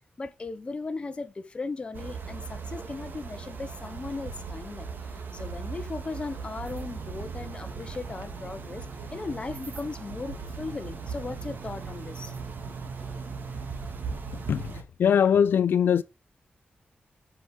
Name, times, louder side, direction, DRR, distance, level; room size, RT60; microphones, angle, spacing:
voice 1, 0.2-4.9 5.3-8.9 9.1-12.4 13.0-13.1, left 3 dB, 30° left, 1.0 m, -37 dB
sound 1, 1.9-14.8, right 5 dB, 65° right, 1.9 m, -38 dB
voice 2, 15.0-16.0, left 8 dB, 80° left, 0.4 m, -21 dB
8.2 x 5.9 x 4.7 m
wide cardioid pair, 135°, 4 cm